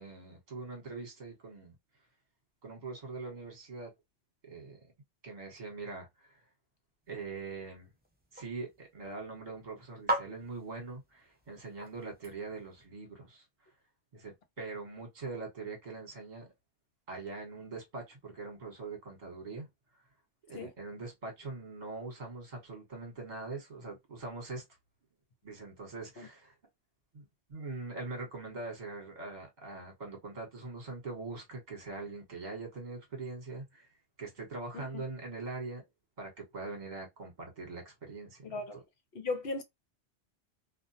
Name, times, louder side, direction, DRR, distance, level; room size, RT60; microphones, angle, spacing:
voice 1, 0.0-1.7 2.6-3.9 4.4-4.8 5.2-6.4 7.1-7.9 8.3-13.4 14.1-16.5 17.1-19.7 20.5-24.6 25.4-26.5 27.1-33.9 34.2-35.8 36.2-38.8, right 3 dB, 40° right, 1.2 m, -42 dB
sound 1, 7.0-12.9, right 1 dB, 15° right, 0.3 m, -41 dB
voice 2, 38.4-38.8 39.1-39.6, left 3 dB, 60° left, 0.8 m, -37 dB
2.4 x 2.2 x 2.6 m
omnidirectional pair, 1.2 m